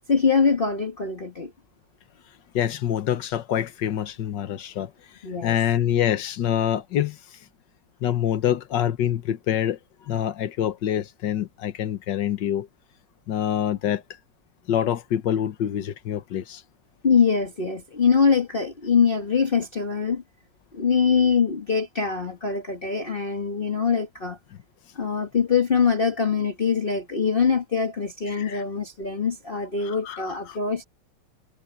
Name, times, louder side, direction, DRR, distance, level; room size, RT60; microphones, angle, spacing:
voice 1, 0.1-1.5 5.2-5.6 17.0-20.2 20.7-24.4 25.0-30.8, left 5 dB, 30° left, 1.8 m, -23 dB
voice 2, 2.5-4.9 5.4-7.2 8.0-12.7 13.3-14.0 14.7-16.6 28.4-28.6 29.8-30.6, left 10 dB, 75° left, 1.7 m, -26 dB
omnidirectional pair, 2.0 m